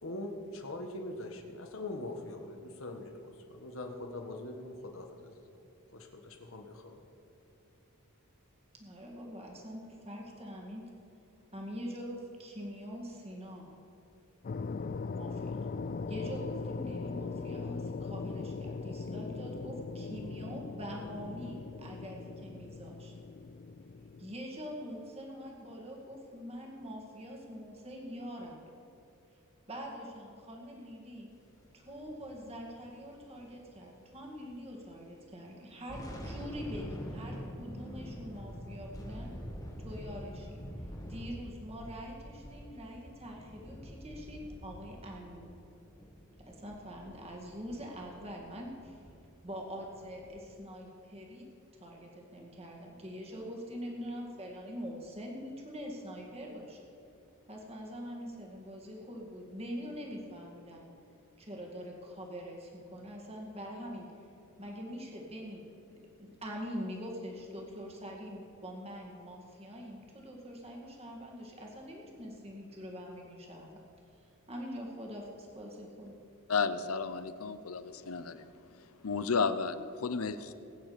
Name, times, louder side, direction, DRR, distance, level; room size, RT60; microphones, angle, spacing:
voice 1, 0.0-5.6 5.9-7.0, left 2 dB, 65° left, 4 dB, 1.6 m, -42 dB
voice 2, 8.7-10.9 11.5-13.7 15.1-15.7 16.1-23.1 24.2-28.7 29.7-31.3 31.7-39.3 39.8-40.6 41.1-45.5 46.5-49.0 49.4-51.5 51.8-56.8 57.5-60.8 61.4-64.1 64.6-65.6 66.2-73.8 74.5-76.2, equal, 30° right, -1 dB, 2.1 m, -44 dB
sound 1, 14.4-24.3, left 4 dB, 40° left, 0.4 m, -39 dB
sound 2, 31.9-34.7 35.0-35.1 35.6-50.4, equal, 15° left, 1.7 m, -46 dB
voice 3, 76.5-78.5 79.0-80.5, left 5 dB, 85° left, 12 dB, 0.7 m, -32 dB
20.5 x 8.9 x 5.1 m, 2.8 s
head